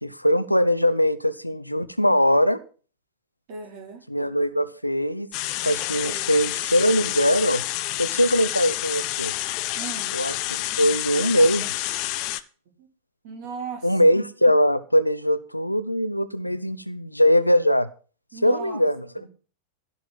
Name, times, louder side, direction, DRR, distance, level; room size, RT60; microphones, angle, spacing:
voice 1, 0.0-2.6 4.1-5.3 5.6-7.6 8.0-9.3 10.1-10.3 10.8-11.7 13.8-17.9 18.4-19.3, equal, 90° left, 12 dB, 1.0 m, -21 dB
voice 2, 3.5-4.0 6.0-6.3 9.8-10.1 12.8-12.9 13.2-13.9 18.3-18.8 19.2-19.3, right 5 dB, 45° right, 2 dB, 5.4 m, -37 dB
sound 1, 5.3-12.4, left 16 dB, 40° left, 1.0 m, -29 dB
16.0 x 5.8 x 7.4 m, 0.37 s
figure-of-eight pair, 90°, 0 cm